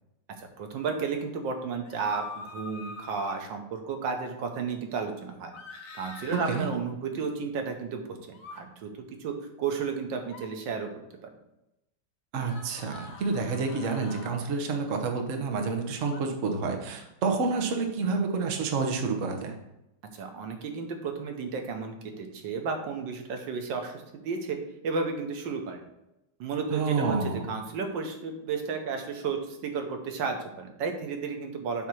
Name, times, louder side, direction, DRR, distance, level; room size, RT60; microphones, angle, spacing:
voice 1, 0.6-5.5 5.9-8.2 8.5-8.9 9.2-10.9 11.2-11.3 20.1-24.6 24.8-25.8 26.4-31.9, right 5 dB, 90° right, 4 dB, 1.6 m, -33 dB
sound 1, 1.8-3.4 5.5-6.6 8.3-8.6 10.2-10.5 12.4-14.4 16.1-16.2, left 3 dB, 55° left, 1.2 m, -44 dB
voice 2, 12.3-19.5 26.7-27.5, right 4 dB, 50° right, 4 dB, 1.1 m, -29 dB
7.7 x 2.8 x 6.1 m, 0.90 s
omnidirectional pair, 1.9 m